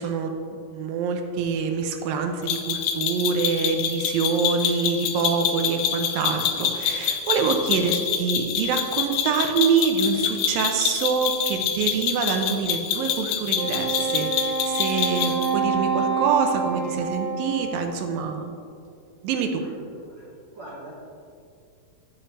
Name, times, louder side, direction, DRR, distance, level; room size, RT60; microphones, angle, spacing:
voice 1, 0.0-18.6 19.2-19.7, right 5 dB, 80° right, 5 dB, 2.3 m, -25 dB
sound 1, 2.5-15.5, left 8 dB, 80° left, 2.2 m, -26 dB
Wind instrument woodwind instrument, 13.5-18.1, right 5 dB, 50° right, 2.5 m, -27 dB
voice 2, 19.6-20.3 20.5-20.9, right 1 dB, 35° right, -9 dB, 2.5 m, -42 dB
12.0 x 5.8 x 3.3 m, 2.4 s
omnidirectional pair, 4.2 m